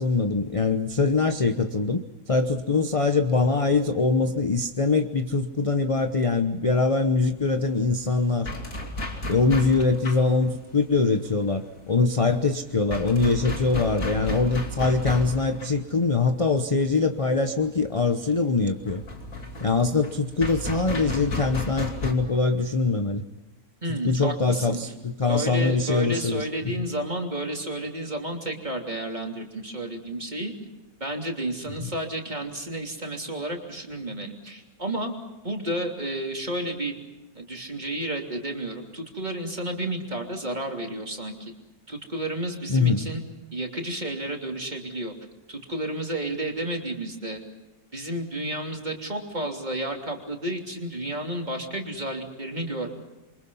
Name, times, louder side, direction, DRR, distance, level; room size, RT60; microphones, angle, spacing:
voice 1, 0.0-2.0 2.3-8.5 9.3-19.0 19.6-23.2 24.0-26.7 31.8-31.9 42.7-43.1, left 3 dB, 25° left, 7 dB, 0.8 m, -23 dB
sound 1, 7.4-22.1, left 2 dB, 60° left, 3.3 m, -34 dB
voice 2, 23.8-24.8 25.3-30.5 31.0-35.1 35.4-36.9 37.3-41.5 41.9-43.2 43.5-45.1 45.5-47.4 47.9-52.9, right 1 dB, 30° right, 2 dB, 3.3 m, -31 dB
28.0 x 24.5 x 5.6 m, 1.1 s
omnidirectional pair, 1.6 m